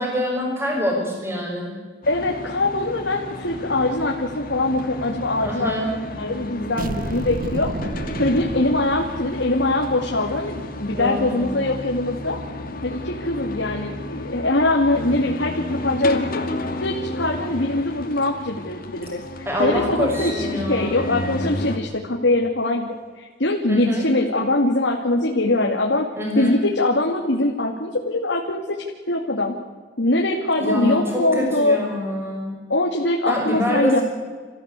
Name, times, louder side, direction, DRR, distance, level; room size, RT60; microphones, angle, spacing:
voice 1, 0.0-1.7 5.4-5.9 10.9-11.6 19.4-21.1 23.7-24.0 26.2-26.5 30.6-32.5 33.3-34.0, left 1 dB, 15° right, -2 dB, 6.3 m, -25 dB
sound 1, 2.0-21.8, left 1 dB, 50° left, 2.5 m, -32 dB
voice 2, 2.1-5.7 6.2-7.7 8.2-12.4 12.8-16.4 16.8-26.1 26.4-29.5 30.0-31.8 32.7-34.0, left 2 dB, 70° left, 0 dB, 2.4 m, -22 dB
sound 2, 6.8-9.5, right 2 dB, 50° right, 0.8 m, -31 dB
28.5 x 15.0 x 8.4 m, 1.5 s
head